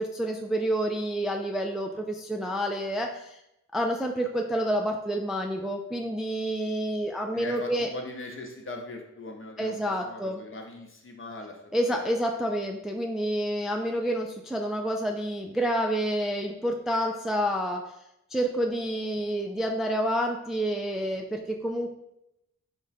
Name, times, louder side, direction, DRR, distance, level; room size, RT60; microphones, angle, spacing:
voice 1, 0.0-3.4 3.7-7.9 9.6-10.4 11.7-17.9 18.3-21.9, equal, ahead, 2 dB, 0.3 m, -28 dB
voice 2, 7.3-12.0, left 2 dB, 40° left, 2 dB, 0.8 m, -40 dB
3.7 x 2.2 x 4.0 m, 0.86 s
cardioid pair, 45°, 31 cm